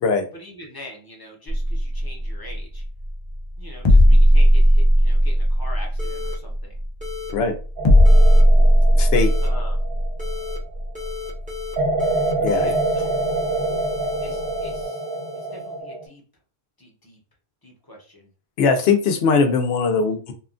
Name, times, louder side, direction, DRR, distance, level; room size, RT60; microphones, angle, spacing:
voice 1, 0.3-2.8 3.6-6.8 9.4-9.8 12.5-13.1 14.2-15.0 15.3-16.2 16.8-17.2 17.6-18.3, left 1 dB, 25° left, -1 dB, 0.7 m, -43 dB
sound 1, 1.5-14.8, equal, 50° left, 0.3 m, -18 dB
sound 2, 6.0-6.3 7.0-7.3 8.1-8.4 9.2-9.5 10.2-10.6 11.0-11.7 12.0-15.7, left 7 dB, 10° right, 0.8 m, -34 dB
sound 3, 7.8-10.8 11.8-16.0, right 2 dB, 40° right, 0.5 m, -26 dB
voice 2, 9.0-9.3 12.4-12.7 18.6-20.3, left 5 dB, 80° left, 7 dB, 0.8 m, -20 dB
2.9 x 2.3 x 2.4 m, 0.39 s
omnidirectional pair, 1.1 m